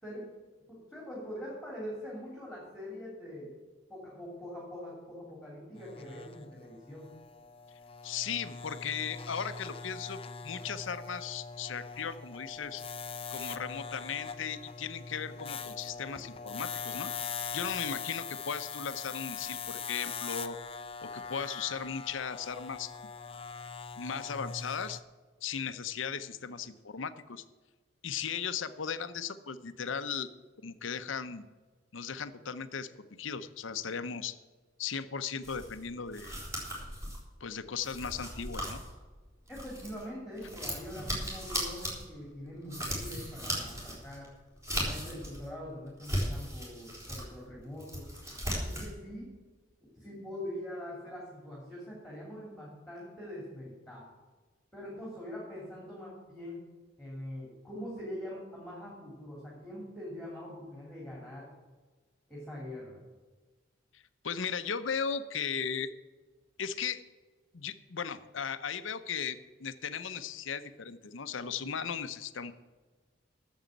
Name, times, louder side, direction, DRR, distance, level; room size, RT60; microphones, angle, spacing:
voice 1, 0.7-3.5 3.9-7.1 39.5-44.3 44.7-48.1 48.4-49.3 50.0-54.2 54.7-56.6 57.0-61.5 62.3-63.0, left 1 dB, ahead, -4 dB, 2.8 m, -43 dB
sound 1, 5.8-25.0, left 6 dB, 30° left, 0.6 m, -42 dB
voice 2, 8.0-12.8 13.3-17.1 17.5-20.6 21.0-22.9 24.0-25.0 25.4-27.4 28.0-30.3 30.6-31.4 31.9-34.4 34.8-36.3 37.4-38.8 63.9-65.9 66.6-67.0 67.5-72.5, left 6 dB, 75° left, 12 dB, 0.7 m, -37 dB
sound 2, 35.4-40.0 40.4-45.5 45.9-47.3 47.6-48.9, equal, 15° right, 3.5 m, -37 dB
9.2 x 7.2 x 8.8 m, 1.4 s
head